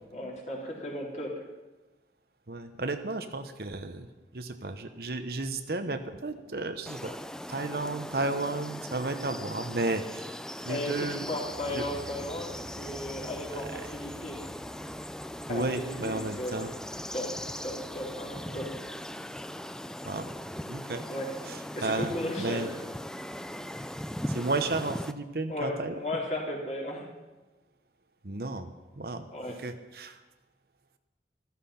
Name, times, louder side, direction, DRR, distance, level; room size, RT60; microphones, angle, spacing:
voice 1, 0.1-1.3 10.7-14.4 15.5-16.7 17.1-17.3 17.6-18.7 21.1-21.3 21.8-22.7 25.5-27.0 29.3-29.6, left 1 dB, 40° left, -3 dB, 4.0 m, -35 dB
voice 2, 2.5-4.1 4.3-7.2 7.5-10.4 10.6-11.2 11.7-11.8 15.5-16.7 20.0-20.3 20.6-21.0 21.5-22.1 22.4-22.7 24.3-25.9 28.2-28.7 29.0-29.2 29.6-30.2, right 2 dB, 60° right, 8 dB, 1.0 m, -33 dB
sound 1, 6.9-25.1, equal, 5° left, 0.4 m, -39 dB
sound 2, 10.7-18.9, equal, 25° left, 2.3 m, -51 dB
14.0 x 14.0 x 5.8 m, 1.1 s
head